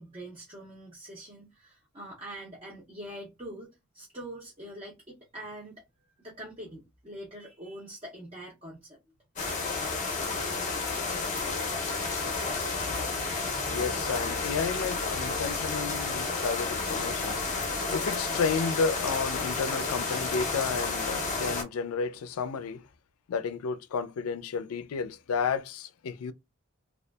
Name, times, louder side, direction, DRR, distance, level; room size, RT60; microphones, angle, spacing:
voice 1, 0.0-3.7 3.9-5.8 6.2-9.0, right 1 dB, 25° right, 0.5 m, -44 dB
sound 1, 9.4-21.6, left 3 dB, 35° left, 0.6 m, -31 dB
voice 2, 13.7-22.8 23.3-26.3, left 5 dB, 85° left, 0.4 m, -32 dB
2.6 x 2.3 x 2.2 m
head